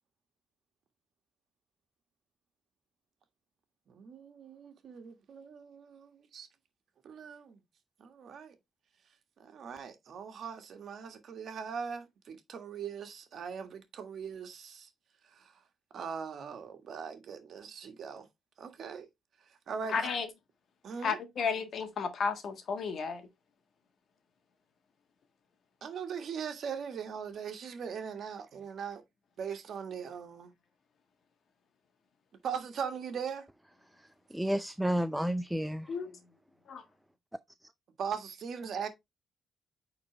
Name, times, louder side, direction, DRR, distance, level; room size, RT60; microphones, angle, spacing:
voice 1, 3.9-6.5 7.0-7.6 8.0-8.5 9.4-14.9 15.2-15.5 15.9-18.3 18.6-19.1 19.5-20.1 20.8-21.2 25.8-29.0 29.4-30.5 32.4-33.5 38.0-38.9, right 7 dB, 60° right, 1.7 m, -40 dB
voice 2, 19.9-20.3 21.0-23.3 35.9-36.2 36.7-36.8, left 5 dB, 60° left, 1.6 m, -33 dB
voice 3, 34.0-35.9, equal, 5° right, 0.4 m, -32 dB
8.8 x 4.1 x 3.2 m
cardioid pair, 90°, 0 cm